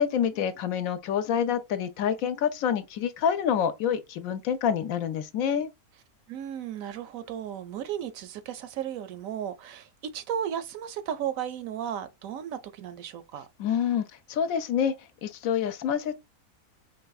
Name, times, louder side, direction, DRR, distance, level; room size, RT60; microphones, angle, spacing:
voice 1, 0.0-5.7 13.6-14.9 15.2-16.2, left 8 dB, 75° left, 1.0 m, -27 dB
voice 2, 6.3-13.5, right 9 dB, 75° right, 0.9 m, -35 dB
4.6 x 3.1 x 2.3 m
omnidirectional pair, 1.5 m